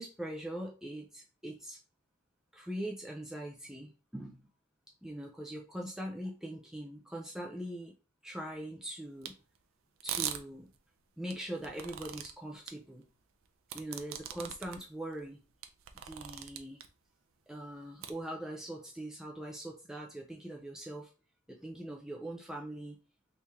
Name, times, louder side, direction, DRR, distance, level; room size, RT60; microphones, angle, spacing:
voice 1, 0.0-1.8 2.5-4.4 5.0-7.9 8.2-9.3 10.0-10.7 11.2-13.1 13.7-15.4 16.0-16.8 17.5-21.1 21.5-23.0, right 1 dB, 5° right, -1 dB, 0.4 m, -42 dB
sound 1, 9.2-9.3 10.0-10.4 11.3-12.3 12.7-12.8 13.7-14.8 15.2-15.3 15.6-16.9 18.0-18.1, right 10 dB, 75° right, 0.4 m, -39 dB
3.1 x 2.8 x 3.5 m, 0.33 s
head